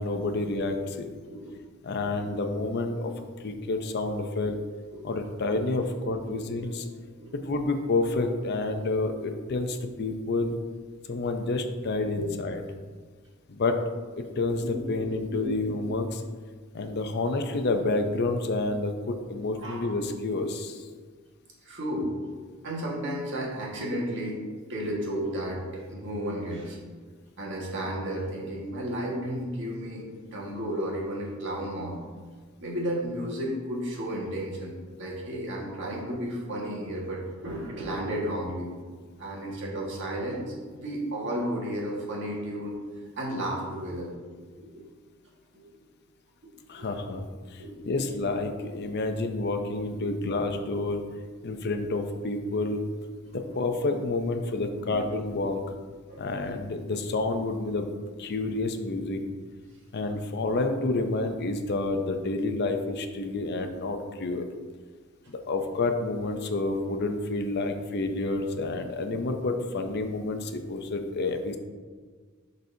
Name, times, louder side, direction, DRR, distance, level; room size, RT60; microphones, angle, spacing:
voice 1, 0.0-1.1 1.8-3.1 3.4-4.6 5.0-6.9 7.3-10.6 11.1-12.6 13.5-13.8 14.4-16.2 16.7-20.9 46.7-47.3 47.5-51.0 51.4-52.8 53.3-55.6 56.2-59.2 59.9-64.5 65.3-71.6, left 2 dB, 50° left, 6 dB, 0.5 m, -29 dB
voice 2, 14.5-15.8 19.6-20.0 21.6-22.1 22.6-24.4 24.7-26.8 27.4-30.1 30.3-32.0 32.6-38.7 39.2-40.5 40.8-42.7 43.1-44.1 44.6-44.9 46.7-47.0 47.6-47.9 50.0-50.3 53.3-53.4 54.8-55.0 56.1-56.2 60.1-60.2, right 1 dB, 60° right, -3 dB, 1.6 m, -33 dB
10.5 x 4.1 x 2.7 m, 1.5 s
head